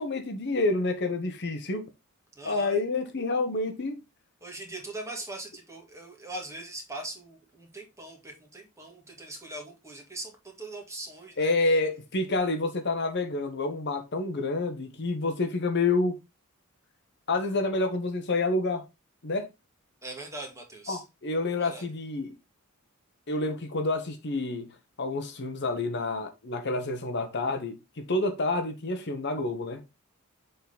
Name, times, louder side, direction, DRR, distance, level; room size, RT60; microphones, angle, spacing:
voice 1, 0.0-1.9 2.4-4.0 11.4-16.2 17.3-18.8 19.2-19.5 20.9-22.3 23.3-24.7 25.0-29.8, left 2 dB, 55° left, 1.0 m, -28 dB
voice 2, 2.4-2.8 4.4-11.8 20.0-21.0 21.6-21.9, right 2 dB, 15° right, 1.8 m, -41 dB
6.9 x 3.9 x 3.9 m
head